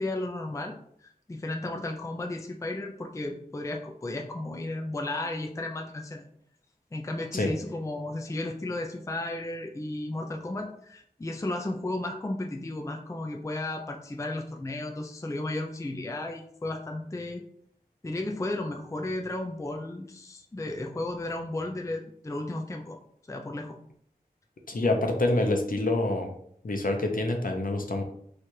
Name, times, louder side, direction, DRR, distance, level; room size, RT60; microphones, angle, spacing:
voice 1, 0.0-6.3 6.9-17.4 18.0-23.0 23.3-23.8, left 2 dB, 20° left, 2 dB, 0.4 m, -34 dB
voice 2, 24.7-26.3 26.6-28.0, left 2 dB, 60° left, 3 dB, 0.7 m, -26 dB
3.1 x 2.4 x 4.3 m, 0.65 s
wide cardioid pair, 55°, 16 cm